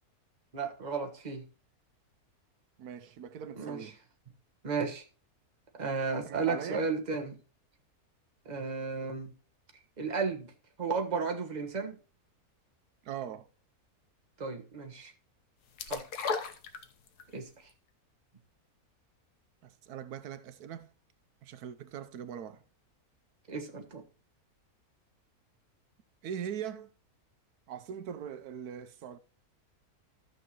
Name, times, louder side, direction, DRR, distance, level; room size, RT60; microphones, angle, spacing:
voice 1, 0.5-1.5 3.5-3.8 4.6-5.0 5.8-7.4 8.4-9.3 10.0-10.5 10.8-12.0 14.4-15.1 15.9-16.1 17.3-17.5 23.5-24.0, right 4 dB, 30° right, 1.3 m, -33 dB
voice 2, 2.8-4.0 6.3-6.9 13.0-13.5 19.6-20.9 21.4-22.6 26.2-26.9 27.7-29.2, right 8 dB, 85° right, 1.2 m, -41 dB
sound 1, 15.8-17.3 17.7-17.8, left 5 dB, 85° left, 1.6 m, -34 dB
13.5 x 6.5 x 2.9 m
omnidirectional pair, 1.6 m